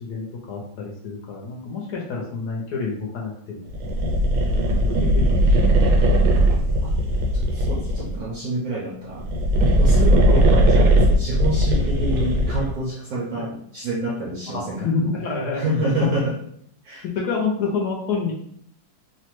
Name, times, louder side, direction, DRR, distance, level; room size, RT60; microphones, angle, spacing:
voice 1, 0.0-3.7 4.5-6.4 10.3-10.4 13.3-13.4 14.5-15.9 17.0-18.3, left 4 dB, 70° left, -2 dB, 1.0 m, -28 dB
sound 1, 3.7-8.2 9.1-12.8, equal, 85° right, 1.4 m, -18 dB
voice 2, 7.3-9.3 9.8-14.9 15.5-16.4 16.8-17.0, right 1 dB, 70° right, -4 dB, 0.8 m, -27 dB
3.2 x 2.1 x 3.0 m, 0.66 s
omnidirectional pair, 2.1 m